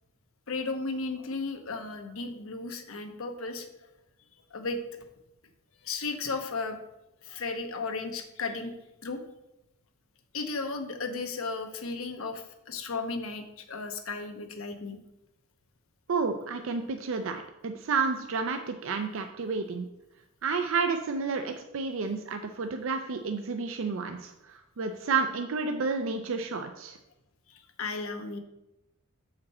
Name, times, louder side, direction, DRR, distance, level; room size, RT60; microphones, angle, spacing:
voice 1, 0.5-3.7 4.5-4.8 5.8-6.8 7.2-8.7 9.0-9.2 10.3-15.0 27.5-28.4, left 3 dB, 80° left, 5 dB, 0.9 m, -35 dB
voice 2, 16.1-19.9 20.4-27.0, right 4 dB, 70° right, 6 dB, 0.5 m, -31 dB
7.3 x 5.1 x 4.2 m, 0.91 s
head